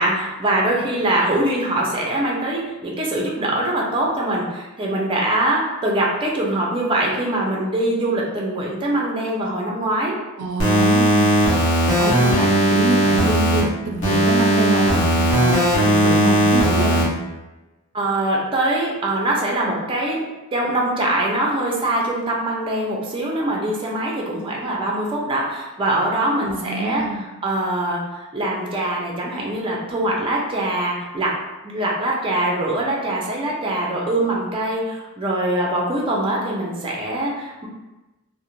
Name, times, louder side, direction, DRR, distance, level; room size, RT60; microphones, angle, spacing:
voice 1, 0.0-10.2 17.9-20.2 20.5-31.3 31.6-37.7, right 1 dB, 25° right, -3 dB, 0.4 m, -23 dB
voice 2, 10.4-11.3 12.0-17.1 26.4-27.2, right 2 dB, 85° right, 2 dB, 0.4 m, -25 dB
sound 1, 10.6-13.6 14.0-17.0, right 1 dB, 55° left, 0.8 m, -17 dB
2.5 x 2.0 x 2.9 m, 1.1 s
head